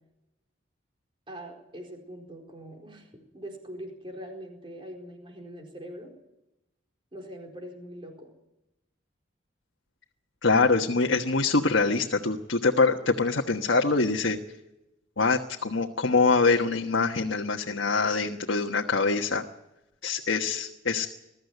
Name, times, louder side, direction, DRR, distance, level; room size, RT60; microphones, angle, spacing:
voice 1, 1.3-6.1 7.1-8.3, equal, 25° right, 2 dB, 4.4 m, -42 dB
voice 2, 10.4-14.4 15.2-19.4 20.0-21.1, left 3 dB, 80° left, 2 dB, 1.3 m, -24 dB
21.5 x 14.0 x 9.4 m, 0.90 s
head